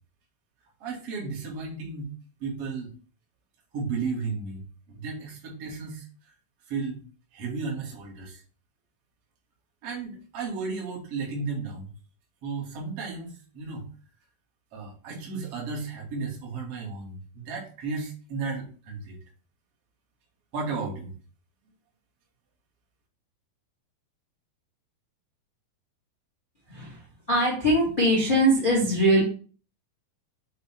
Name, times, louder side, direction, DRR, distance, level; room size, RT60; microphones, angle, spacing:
voice 1, 0.8-2.1 2.4-2.9 3.7-4.6 4.9-6.3 6.7-7.0 7.3-8.4 9.8-11.9 12.4-13.9 14.7-19.2 20.5-21.1, right 4 dB, 45° right, -3 dB, 2.3 m, -34 dB
voice 2, 26.7-27.0 27.3-29.2, equal, 65° left, -4 dB, 0.5 m, -21 dB
7.4 x 2.9 x 4.4 m, 0.39 s
omnidirectional pair, 4.6 m